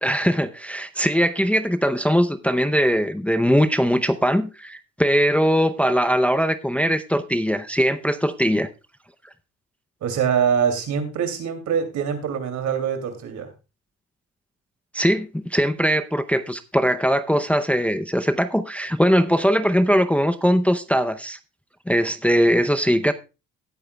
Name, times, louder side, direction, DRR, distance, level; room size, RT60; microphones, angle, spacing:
voice 1, 0.0-8.7 14.9-21.4 21.9-23.1, equal, 5° left, 0.6 m, -20 dB
voice 2, 10.0-13.5, right 7 dB, 70° right, 2.7 m, -24 dB
18.0 x 8.7 x 2.3 m
cardioid pair, 90°, 30 cm